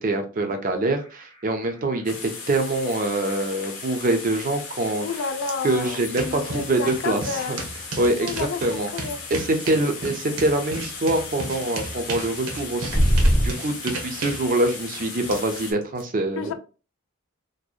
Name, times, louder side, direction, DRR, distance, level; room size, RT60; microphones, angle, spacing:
voice 1, 0.0-5.1 5.6-7.2 7.5-7.6 8.0-8.9 9.3-16.5, right 2 dB, 40° right, 0.4 m, -25 dB
sound 1, 0.8-15.7, equal, 20° left, 0.8 m, -31 dB
sound 2, 2.1-15.7, left 5 dB, 85° left, 0.7 m, -37 dB
voice 2, 5.0-7.6 8.2-9.2 9.6-9.9 16.4-16.5, left 5 dB, 60° left, 0.3 m, -31 dB
sound 3, 5.4-5.5 5.8-16.0, right 3 dB, 85° right, 0.7 m, -35 dB
2.7 x 2.1 x 2.3 m
head